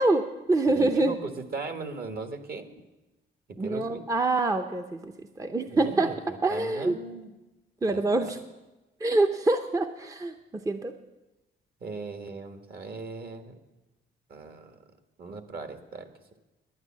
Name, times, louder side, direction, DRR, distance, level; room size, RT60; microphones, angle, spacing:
voice 1, 0.0-1.1 3.6-5.1 5.4-6.1 6.4-6.9 7.8-8.4 9.0-10.9, right 2 dB, 15° right, 6 dB, 0.6 m, -25 dB
voice 2, 0.7-2.7 3.5-4.0 5.7-7.3 7.8-8.3 11.8-13.6 14.3-14.8 15.2-16.1, right 4 dB, 50° right, 7 dB, 1.4 m, -38 dB
11.0 x 9.5 x 7.3 m, 1.1 s
cardioid pair, 90°, 20 cm